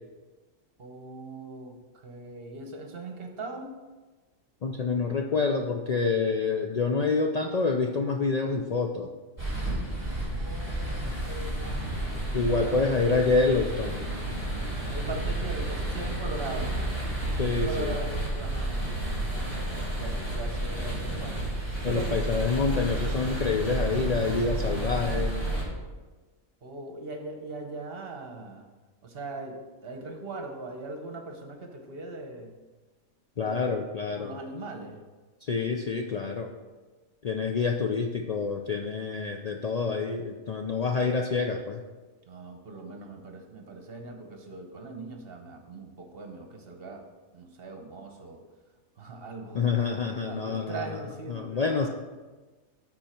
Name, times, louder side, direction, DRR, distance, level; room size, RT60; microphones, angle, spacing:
voice 1, 0.8-3.8 10.3-11.6 12.5-12.8 14.9-16.8 17.6-19.4 20.0-21.4 21.8-22.2 26.6-28.7 29.0-32.5 33.4-33.8 34.2-35.0 42.2-47.0 47.3-48.4 49.0-49.7 50.2-51.9, right 2 dB, 45° right, 4 dB, 1.1 m, -40 dB
voice 2, 4.6-9.1 12.3-14.0 17.4-18.0 21.8-25.3 33.4-34.3 35.4-36.5 37.2-41.8 49.5-51.0 51.3-51.9, left 4 dB, 80° left, 3 dB, 0.3 m, -27 dB
sound 1, 9.4-25.6, right 1 dB, 15° left, 3.1 m, -31 dB
13.0 x 4.5 x 4.4 m, 1.3 s
omnidirectional pair, 1.4 m